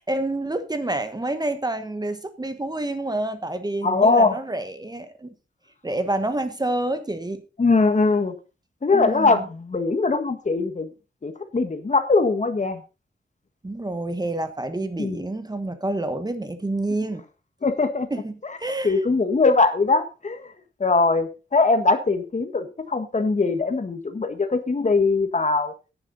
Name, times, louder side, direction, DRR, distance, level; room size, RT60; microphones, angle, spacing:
voice 1, 0.0-5.3 5.8-7.4 8.9-9.5 13.6-17.2 18.1-19.0, right 2 dB, 20° right, 1.3 m, -28 dB
voice 2, 3.8-4.4 7.6-8.3 8.8-10.9 11.2-12.8 15.0-15.2 17.6-18.1 18.8-20.5 20.8-25.9, left 3 dB, 40° left, 1.5 m, -21 dB
10.5 x 10.0 x 4.1 m
wide cardioid pair, 120°, 19 cm